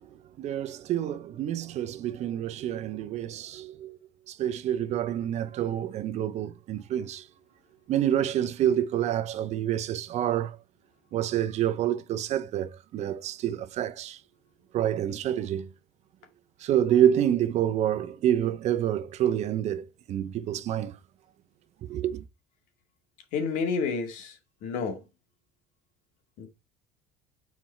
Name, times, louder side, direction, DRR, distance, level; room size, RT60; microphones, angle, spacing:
voice 1, 0.4-4.0 4.3-7.2 7.9-10.6 11.1-14.2 14.7-15.7 16.6-21.0 21.9-22.2, right 10 dB, 55° right, 0.8 m, -27 dB
voice 2, 23.3-25.1 26.4-26.5, left 5 dB, 70° left, 2.3 m, -30 dB
7.0 x 4.6 x 4.4 m
supercardioid pair, 100°, 14 cm